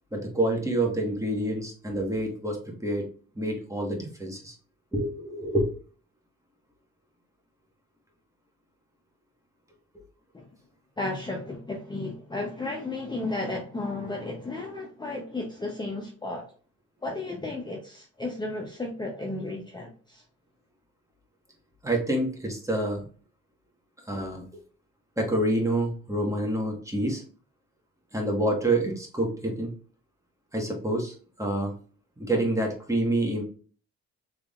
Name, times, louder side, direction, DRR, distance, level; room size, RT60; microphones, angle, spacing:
voice 1, 0.1-3.1 3.3-4.5 4.9-5.7 21.8-23.0 24.1-24.4 25.2-27.2 28.1-29.7 30.5-31.7 32.2-33.4, right 1 dB, 10° right, 0 dB, 1.3 m, -27 dB
voice 2, 11.0-16.4 17.0-20.2, left 2 dB, 15° left, 0 dB, 0.8 m, -33 dB
3.5 x 3.5 x 2.4 m, 0.41 s
cardioid pair, 90°, 30 cm